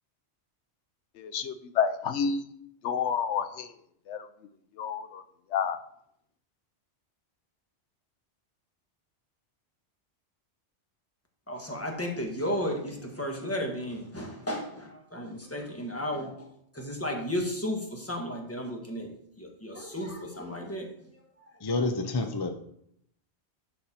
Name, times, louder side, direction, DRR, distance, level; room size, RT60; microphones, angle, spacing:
voice 1, 1.2-2.5 2.8-3.7 4.1-4.3 4.8-5.2 5.5-5.8, left 7 dB, 85° left, 10 dB, 0.9 m, -29 dB
voice 2, 11.5-16.5 16.7-21.2, equal, 15° left, 1 dB, 1.4 m, -34 dB
voice 3, 21.6-22.5, left 3 dB, 30° left, 6 dB, 0.5 m, -28 dB
11.5 x 4.3 x 4.3 m, 0.70 s
omnidirectional pair, 1.2 m